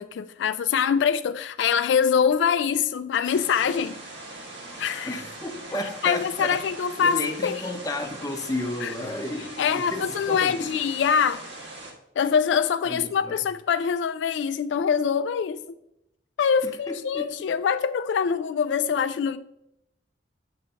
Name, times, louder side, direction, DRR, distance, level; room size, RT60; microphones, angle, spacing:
voice 1, 0.0-4.0 4.8-5.2 6.0-7.6 8.8-8.9 9.6-11.4 12.2-15.8 16.4-19.4, left 7 dB, 75° left, 0.3 m, -24 dB
sound 1, 3.2-11.9, right 2 dB, 75° right, 1.9 m, -41 dB
voice 2, 5.1-6.6 7.0-10.8 12.9-13.4 16.9-17.3, left 1 dB, 20° left, 0.7 m, -32 dB
7.8 x 3.2 x 5.4 m
head